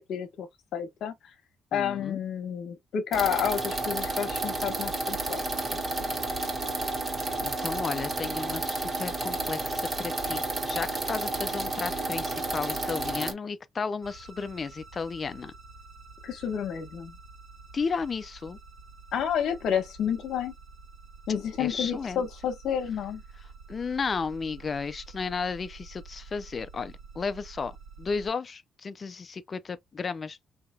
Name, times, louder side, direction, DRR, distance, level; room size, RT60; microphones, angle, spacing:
voice 1, 0.1-0.5 0.7-1.3 1.7-5.4 5.7-6.2 16.2-17.1 19.1-20.5 21.3-23.2, left 8 dB, 75° left, 1.1 m, -30 dB
voice 2, 1.7-2.2 6.9-7.0 7.4-15.5 17.7-18.6 21.6-22.2 23.7-30.5, left 5 dB, 40° left, 0.4 m, -34 dB
sound 1, 3.1-13.3, right 2 dB, 30° right, 1.5 m, -31 dB
sound 2, 14.0-28.3, right 4 dB, 70° right, 1.8 m, -49 dB
4.7 x 2.8 x 2.2 m
cardioid pair, 90°, 0 cm